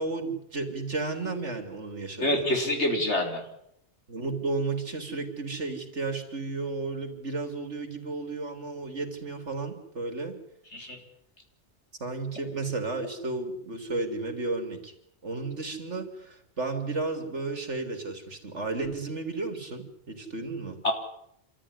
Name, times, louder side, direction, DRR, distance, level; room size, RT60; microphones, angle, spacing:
voice 1, 0.0-2.5 4.1-10.4 12.0-14.9 15.2-20.8, right 3 dB, 85° right, 5 dB, 3.7 m, -33 dB
voice 2, 2.2-3.4 10.7-11.0 20.8-20.9, left 1 dB, 80° left, 3 dB, 4.5 m, -26 dB
27.0 x 14.0 x 9.9 m, 0.76 s
omnidirectional pair, 1.2 m